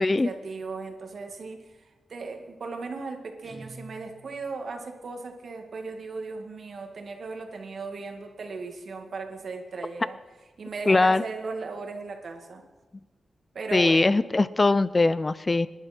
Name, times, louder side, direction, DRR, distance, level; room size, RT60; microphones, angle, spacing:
voice 1, 0.0-1.6 2.1-10.2 10.6-12.6 13.5-14.2, right 4 dB, 60° right, 4 dB, 2.0 m, -37 dB
Guitar, 3.4-4.7, right 1 dB, 20° right, 1.4 m, -47 dB
voice 2, 10.9-11.2 13.7-15.7, left 2 dB, 25° left, 16 dB, 0.4 m, -21 dB
25.5 x 11.0 x 4.4 m, 1.2 s
wide cardioid pair, 130°, 0 cm